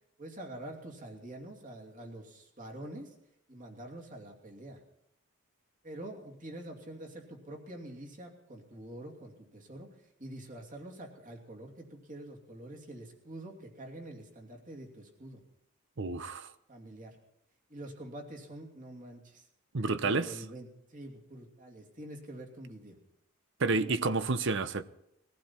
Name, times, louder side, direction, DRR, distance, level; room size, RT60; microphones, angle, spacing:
voice 1, 0.2-3.1 3.5-4.8 5.8-15.4 16.7-17.2 17.7-19.5 20.0-23.0 23.6-24.2, right 1 dB, 35° right, 2.7 m, -46 dB
voice 2, 16.0-16.5 19.7-20.5 23.6-24.8, right 3 dB, 55° right, 0.8 m, -30 dB
21.0 x 15.0 x 4.4 m
head